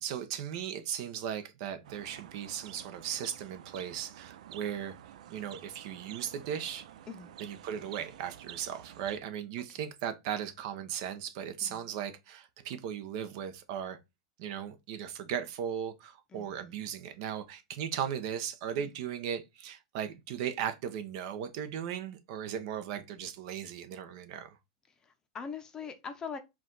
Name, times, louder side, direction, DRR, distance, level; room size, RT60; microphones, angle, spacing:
voice 1, 0.0-4.9 5.3-6.9 7.4-14.0 14.4-24.6, right 9 dB, 55° right, 0.8 m, -37 dB
sound 1, 1.8-9.2, right 11 dB, 85° right, 0.4 m, -50 dB
voice 2, 16.3-16.8 18.8-18.9 25.0-26.4, left 6 dB, 20° left, 0.6 m, -42 dB
4.8 x 2.4 x 3.8 m
supercardioid pair, 145°, 4 cm